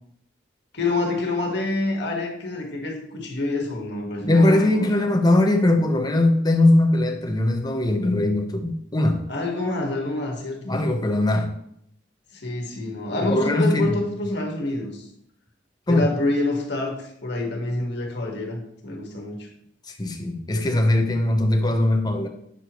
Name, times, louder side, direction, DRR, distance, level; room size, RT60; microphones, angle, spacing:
voice 1, 0.7-5.1 9.3-10.8 12.3-15.1 15.9-19.5, left 2 dB, 65° left, 0 dB, 1.7 m, -27 dB
voice 2, 4.2-9.2 10.7-11.5 13.2-14.0 15.9-16.0 19.9-22.3, left 1 dB, 20° left, 4 dB, 0.9 m, -20 dB
8.5 x 6.5 x 3.1 m, 0.72 s
head